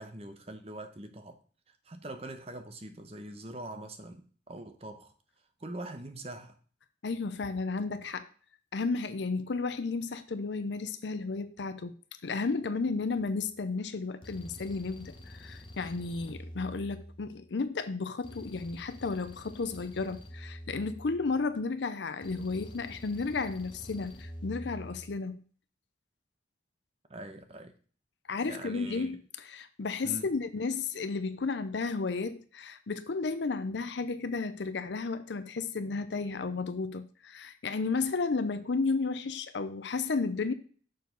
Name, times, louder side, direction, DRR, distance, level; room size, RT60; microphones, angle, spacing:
voice 1, 0.0-1.4 1.7-5.1 5.6-6.6 27.1-27.7 28.4-29.1 30.0-30.3, right 1 dB, 35° right, 0.9 m, -43 dB
voice 2, 7.0-8.3 8.7-11.9 12.2-25.4 28.3-40.5, left 4 dB, 75° left, 0.6 m, -33 dB
sound 1, 13.2-13.4 14.2-17.5 18.2-21.5 22.2-25.2, equal, 25° left, 0.9 m, -47 dB
6.5 x 4.6 x 5.2 m
head